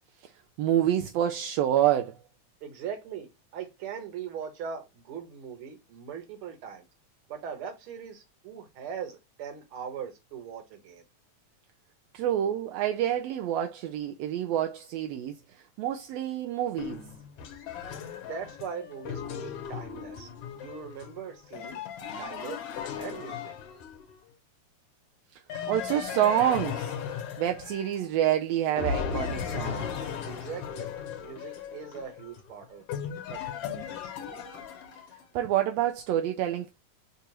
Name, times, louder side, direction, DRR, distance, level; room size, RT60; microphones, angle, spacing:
voice 1, 0.6-2.1 12.1-15.4 15.8-17.0 25.7-26.9 27.4-30.1 35.3-36.7, right 11 dB, 80° right, 1.5 m, -27 dB
voice 2, 2.6-6.8 7.3-11.0 18.3-20.3 20.6-22.6 23.0-23.5 30.2-30.9 31.2-32.8 33.3-34.1, right 7 dB, 55° right, 1.8 m, -40 dB
sound 1, 16.8-24.2 25.5-28.3 28.8-35.2, left 7 dB, 65° left, 1.6 m, -37 dB
6.8 x 2.4 x 2.9 m
omnidirectional pair, 3.4 m